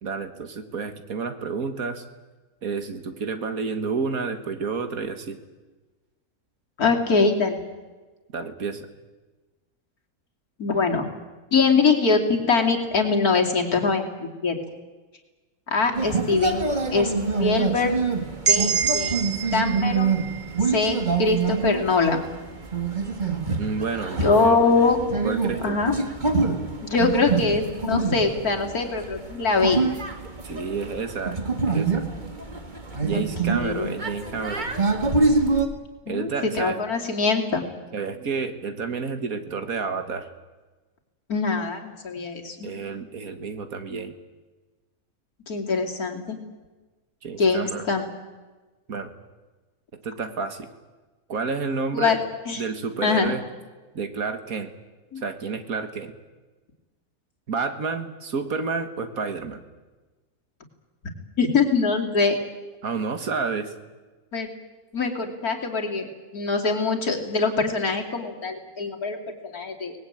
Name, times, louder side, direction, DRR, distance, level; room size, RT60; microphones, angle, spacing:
voice 1, 0.0-2.0 2.6-5.4 8.3-8.9 23.6-24.6 25.2-25.8 30.4-31.4 31.7-32.0 33.0-34.7 36.1-36.8 37.9-40.3 42.6-44.1 47.2-47.9 48.9-49.1 50.0-50.7 51.3-52.2 52.6-53.4 53.9-54.7 55.2-56.1 57.5-59.6 62.8-63.7, right 4 dB, 70° right, 8 dB, 2.1 m, -30 dB
voice 2, 6.8-7.6 10.6-11.0 11.5-14.6 15.7-17.1 17.4-18.0 18.4-20.2 20.6-22.2 24.2-25.0 25.6-25.9 26.8-29.8 33.1-33.9 36.1-37.7 41.3-42.7 45.5-46.4 47.4-48.1 51.9-52.2 52.5-52.6 53.0-53.3 55.1-55.2 61.4-62.4 64.3-64.5 64.9-66.1 66.3-69.9, left 4 dB, 80° left, 2 dB, 3.3 m, -23 dB
sound 1, 15.9-35.7, right 4 dB, 30° right, 2.0 m, -26 dB
sound 2, 18.4-22.3, right 7 dB, 50° right, 1.8 m, -28 dB
24.5 x 19.5 x 8.8 m, 1.2 s
omnidirectional pair, 1.6 m